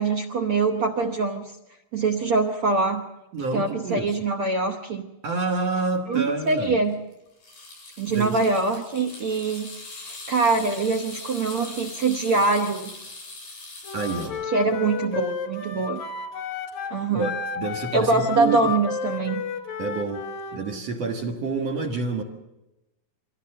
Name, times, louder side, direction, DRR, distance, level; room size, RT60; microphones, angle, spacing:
voice 1, 0.0-1.5 1.9-3.1 3.5-5.1 6.1-7.0 8.0-9.7 10.1-12.9 14.5-16.0 16.9-17.3 17.9-19.4, right 3 dB, 70° right, 5 dB, 1.3 m, -24 dB
voice 2, 3.3-4.1 5.2-6.8 8.1-8.4 13.9-14.4 17.1-18.7 19.8-22.2, right 3 dB, 55° right, 2 dB, 2.3 m, -28 dB
sound 1, 6.5-6.7 6.9-7.1 7.4-14.3, left 2 dB, 65° left, 9.3 m, -41 dB
Wind instrument woodwind instrument, 13.8-20.6, left 5 dB, 85° left, 3.7 m, -32 dB
24.0 x 16.5 x 7.6 m, 0.99 s
omnidirectional pair, 4.0 m